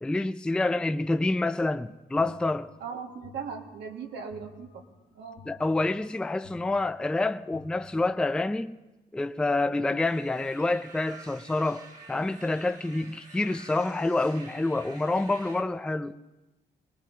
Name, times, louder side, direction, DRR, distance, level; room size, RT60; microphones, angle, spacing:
voice 1, 0.0-2.7 5.5-8.7 9.1-16.2, left 2 dB, 5° left, 0.4 m, -27 dB
sound 1, 2.2-8.5, left 4 dB, 85° left, 1.6 m, -54 dB
voice 2, 2.8-4.9 5.1-5.5, right 6 dB, 85° right, 1.9 m, -39 dB
sound 2, 10.0-15.6, right 3 dB, 45° right, 1.9 m, -49 dB
23.0 x 19.0 x 2.8 m
cardioid pair, 100°, 18 cm